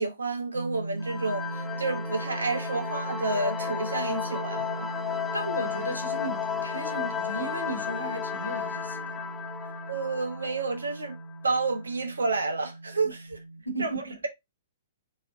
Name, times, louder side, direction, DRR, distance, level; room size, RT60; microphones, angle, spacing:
voice 1, 0.0-4.9 9.9-11.2 11.4-13.4 13.8-14.3, right 3 dB, 70° right, 1.2 m, -30 dB
sound 1, 0.5-13.6, right 2 dB, 85° right, 0.5 m, -39 dB
sound 2, 1.0-11.4, left 7 dB, 10° left, 0.5 m, -34 dB
voice 2, 5.3-9.2 13.0-13.1 13.6-14.1, right 1 dB, 90° left, 1.1 m, -35 dB
4.1 x 3.2 x 3.9 m
figure-of-eight pair, 115°, 0 cm